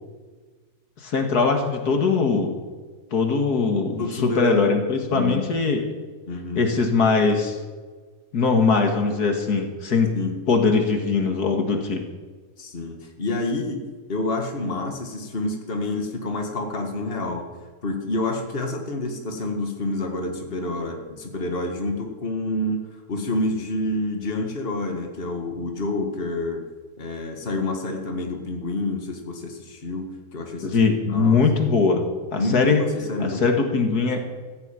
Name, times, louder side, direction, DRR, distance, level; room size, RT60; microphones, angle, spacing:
voice 1, 1.0-2.6 3.1-5.8 6.5-7.6 8.3-10.2 10.5-12.0 30.6-32.8 33.2-34.3, left 4 dB, 80° left, 4 dB, 2.3 m, -21 dB
voice 2, 4.0-4.7 5.1-5.4 6.3-6.6 10.1-10.4 12.6-13.8 14.1-17.5 17.8-22.8 23.1-26.6 27.0-30.8 31.1-31.4 32.4-33.4, left 2 dB, 40° left, 3 dB, 2.0 m, -28 dB
15.0 x 8.3 x 9.1 m, 1.4 s
omnidirectional pair, 1.6 m